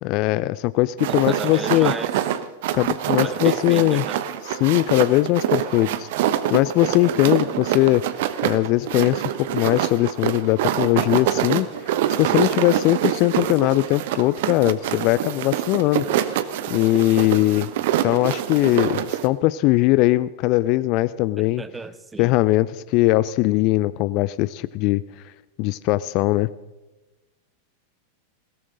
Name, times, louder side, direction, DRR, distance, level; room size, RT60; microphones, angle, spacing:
voice 1, 0.0-1.9 2.7-4.1 4.4-6.1 6.5-8.0 8.4-11.9 12.2-16.4 16.7-17.7 18.0-21.6 22.2-25.0 25.6-26.5, left 18 dB, 40° left, 17 dB, 0.4 m, -20 dB
sound 1, 1.0-19.3, right 11 dB, 50° right, 1.0 m, -25 dB
voice 2, 1.1-2.1 3.2-4.2 21.4-22.3, right 3 dB, 10° right, 14 dB, 1.0 m, -34 dB
20.5 x 17.5 x 3.8 m, 1.1 s
figure-of-eight pair, 90°, 0 cm